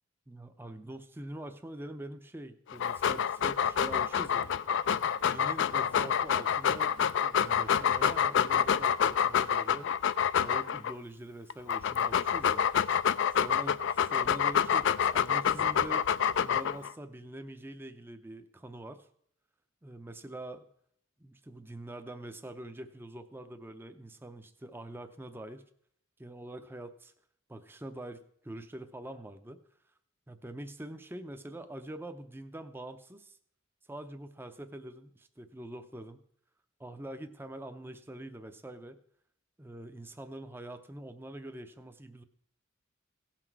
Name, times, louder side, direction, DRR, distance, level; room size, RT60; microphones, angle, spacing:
voice 1, 0.3-4.5 5.3-9.9 10.4-12.6 13.4-16.1 16.4-19.1 19.8-20.7 21.2-25.6 26.2-27.1 27.5-29.6 30.3-33.4 33.9-36.2 36.8-39.0 39.6-42.2, right 1 dB, 10° right, 8 dB, 0.5 m, -44 dB
Dog, 2.7-10.9 11.5-16.9, left 8 dB, 60° left, 0.4 m, -27 dB
16.5 x 5.9 x 4.6 m, 0.68 s
head